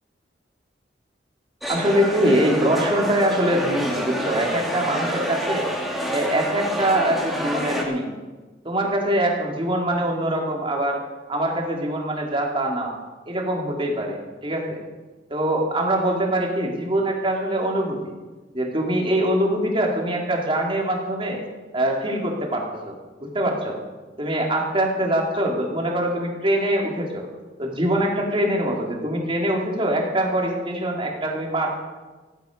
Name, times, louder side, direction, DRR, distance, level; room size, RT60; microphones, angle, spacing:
sound 1, 1.6-7.8, equal, ahead, 2.9 m, -27 dB
voice 1, 1.7-5.7 6.1-8.1 8.6-11.0 11.3-12.9 13.3-14.8 15.3-18.1 18.5-21.4 21.7-22.9 23.2-23.8 24.2-27.3 27.6-31.8, right 1 dB, 30° right, 0 dB, 3.1 m, -23 dB
16.0 x 15.0 x 5.3 m, 1.2 s
head